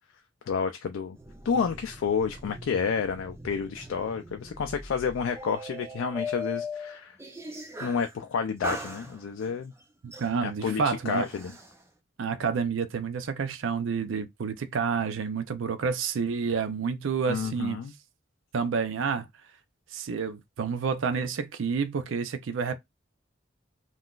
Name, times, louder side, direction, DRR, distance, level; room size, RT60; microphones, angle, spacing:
voice 1, 0.5-1.2 1.4-7.2 7.8-9.7 10.4-11.5 17.3-17.9, left 6 dB, 85° left, 0.4 m, -30 dB
sound 1, 1.1-8.1 8.6-9.6 10.1-11.7, left 2 dB, 15° right, 0.5 m, -40 dB
voice 2, 10.2-11.3 12.2-17.8 18.5-19.3 19.9-22.7, right 5 dB, 75° right, 0.4 m, -29 dB
3.7 x 2.4 x 2.3 m
head